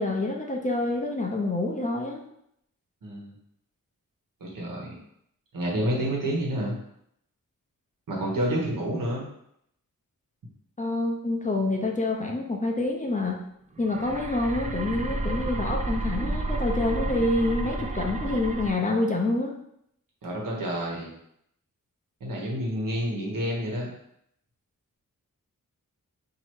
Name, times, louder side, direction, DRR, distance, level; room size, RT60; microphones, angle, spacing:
voice 1, 0.0-2.2 10.8-13.4 13.8-19.5, left 2 dB, 25° left, 0 dB, 0.6 m, -27 dB
voice 2, 3.0-3.3 4.4-5.0 5.5-6.8 8.1-9.2 20.2-21.1 22.2-23.9, right 1 dB, 75° right, -3 dB, 1.3 m, -29 dB
sound 1, 13.7-18.7, right 2 dB, 25° right, 0.4 m, -31 dB
3.0 x 2.9 x 4.5 m, 0.74 s
wide cardioid pair, 90°, 33 cm